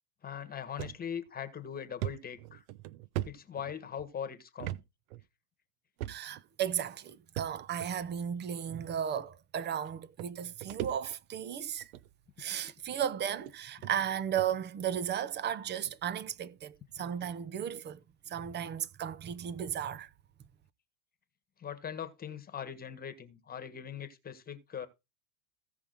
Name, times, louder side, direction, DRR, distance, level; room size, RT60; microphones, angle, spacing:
voice 1, 0.2-2.6 3.2-4.8 17.5-17.6 21.6-24.9, left 8 dB, 20° left, 1.4 m, -41 dB
sound 1, 0.8-1.0 1.4-1.5 2.0-4.1 4.6-4.8 5.1-5.2 6.0-6.5 7.4-7.9 8.8-8.9 9.9-10.0 10.2-11.4 11.8-12.1 12.9-13.0 13.5-13.6 13.8-13.9 14.4-14.6, right 14 dB, 60° right, 0.8 m, -39 dB
voice 2, 6.1-11.9 12.4-18.0 18.3-20.1, right 9 dB, 25° right, 0.7 m, -35 dB
15.5 x 5.6 x 4.0 m
hypercardioid pair, 115°, 46 cm